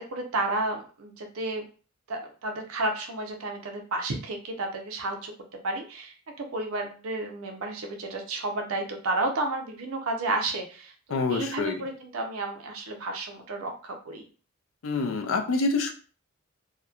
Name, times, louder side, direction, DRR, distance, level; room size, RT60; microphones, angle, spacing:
voice 1, 0.0-1.6 2.1-5.3 5.6-14.2, right 2 dB, 80° right, 3 dB, 0.6 m, -32 dB
voice 2, 11.1-11.8 14.8-15.9, left 3 dB, 65° left, 5 dB, 0.4 m, -26 dB
2.8 x 2.1 x 2.3 m, 0.39 s
head